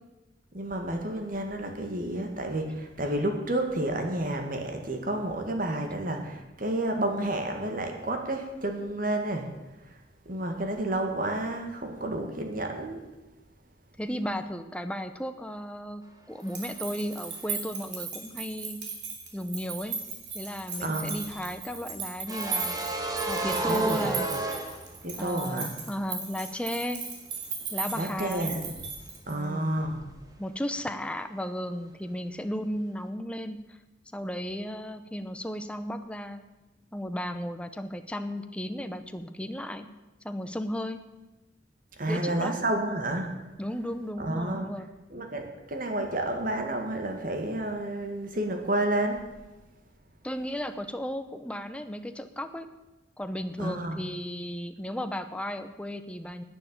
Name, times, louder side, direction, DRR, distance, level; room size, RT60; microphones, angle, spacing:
voice 1, 0.5-9.5 10.3-13.0 20.8-21.1 23.7-24.1 25.0-25.7 27.9-28.7 29.3-30.1 42.0-43.3 44.2-44.7 45.1-49.2 53.6-54.0, right 1 dB, 50° right, 4 dB, 2.0 m, -30 dB
voice 2, 14.0-18.8 19.3-20.0 20.3-22.8 23.3-24.3 25.2-27.0 27.7-28.5 29.3-29.7 30.4-33.8 34.1-36.4 36.9-39.9 40.2-41.0 42.1-42.6 43.6-44.9 50.2-52.7 53.2-56.4, equal, 5° left, 8 dB, 0.8 m, -34 dB
sound 1, 16.4-29.4, right 5 dB, 70° right, 3.3 m, -37 dB
sound 2, 20.9-25.3 25.6-25.7 27.9-28.3 28.6-28.7, right 2 dB, 20° right, 1.6 m, -32 dB
10.5 x 9.3 x 8.8 m, 1.1 s
head